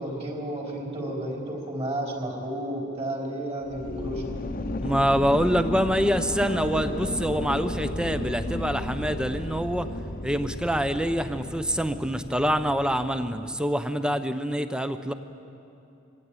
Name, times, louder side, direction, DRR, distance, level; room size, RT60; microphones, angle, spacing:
voice 1, 0.0-4.2, right 1 dB, 35° right, -1 dB, 4.1 m, -32 dB
sound 1, 3.6-13.6, left 2 dB, 45° left, 1.0 m, -33 dB
voice 2, 4.8-9.9 10.2-15.1, equal, 5° right, 10 dB, 0.8 m, -26 dB
23.0 x 16.5 x 9.0 m, 2.8 s
head